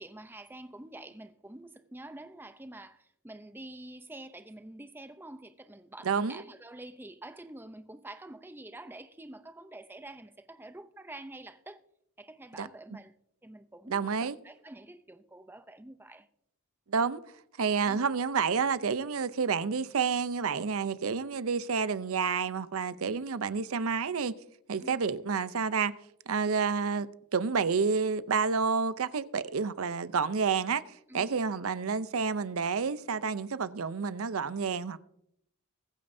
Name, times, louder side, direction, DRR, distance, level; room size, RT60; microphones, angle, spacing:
voice 1, 0.0-11.8 12.2-13.1 13.4-16.3 24.8-25.1 31.1-31.4, right 1 dB, 10° right, 0.6 m, -47 dB
voice 2, 6.0-6.4 12.6-12.7 13.9-14.3 16.9-17.2 17.6-24.3 24.7-25.9 26.3-30.8 31.1-35.0, right 5 dB, 75° right, 0.6 m, -29 dB
22.0 x 8.8 x 2.7 m
head